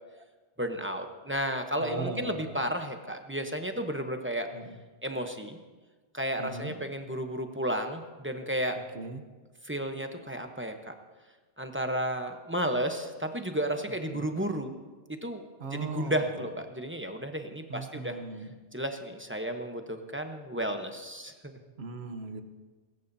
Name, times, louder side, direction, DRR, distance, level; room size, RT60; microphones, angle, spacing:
voice 1, 0.6-4.5 5.0-5.6 6.1-8.8 9.6-10.9 11.6-14.7 15.1-15.4 15.7-18.2 18.7-21.6, equal, 10° right, 5 dB, 0.9 m, -33 dB
voice 2, 1.8-2.7 4.5-4.8 6.4-6.8 8.9-9.2 14.1-14.3 15.6-16.4 17.7-18.5 21.8-22.4, right 4 dB, 70° right, 8 dB, 1.3 m, -38 dB
20.0 x 17.0 x 2.7 m, 1.3 s
omnidirectional pair, 1.1 m